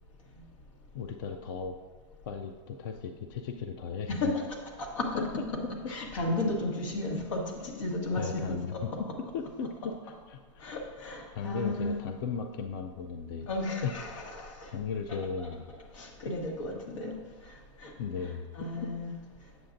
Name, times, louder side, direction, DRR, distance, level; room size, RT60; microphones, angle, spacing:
voice 1, 0.9-1.8 2.3-4.2 5.1-6.0 8.2-8.7 9.3-10.6 11.3-13.5 13.8-13.9 14.7-15.7 16.2-16.3 18.0-18.5, left 6 dB, 45° left, 6 dB, 0.4 m, -36 dB
voice 2, 4.1-5.3 5.9-9.0 10.6-12.0 13.5-14.7 15.1-15.5 15.9-17.2 17.8-17.9 18.5-19.1, left 2 dB, 85° left, 0 dB, 1.5 m, -34 dB
7.7 x 7.1 x 2.6 m, 1.4 s
supercardioid pair, 165°, 16 cm